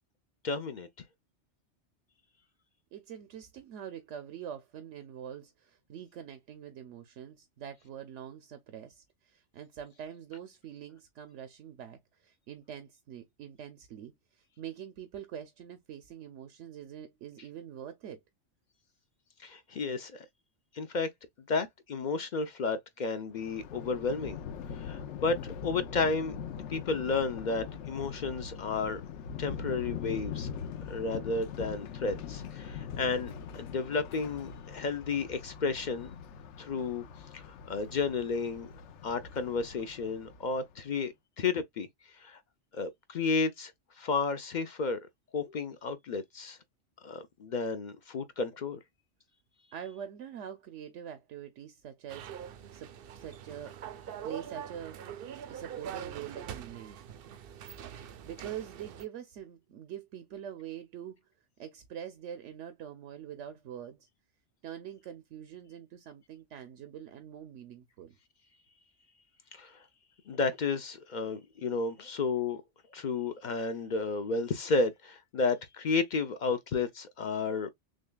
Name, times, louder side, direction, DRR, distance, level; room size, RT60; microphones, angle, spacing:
voice 1, 0.4-0.9 19.4-20.3 20.7-21.1 21.5-24.4 24.7-26.4 26.7-29.0 29.4-30.5 30.9-36.2 36.6-37.0 37.3-38.7 39.0-41.9 42.2-42.4 42.7-43.7 44.0-45.0 45.3-46.6 47.0-48.8 69.5-69.8 70.3-72.6 72.9-77.7, left 4 dB, 55° left, 0.5 m, -32 dB
voice 2, 2.9-18.2 49.7-53.8 54.2-57.0 57.7-61.2 61.6-64.0 64.6-68.1, right 9 dB, 80° right, 1.0 m, -45 dB
Thunder, 23.3-40.7, left 7 dB, 75° left, 0.9 m, -42 dB
sound 1, 52.1-59.0, right 8 dB, 60° right, 0.7 m, -43 dB
6.3 x 2.2 x 2.2 m
omnidirectional pair, 1.2 m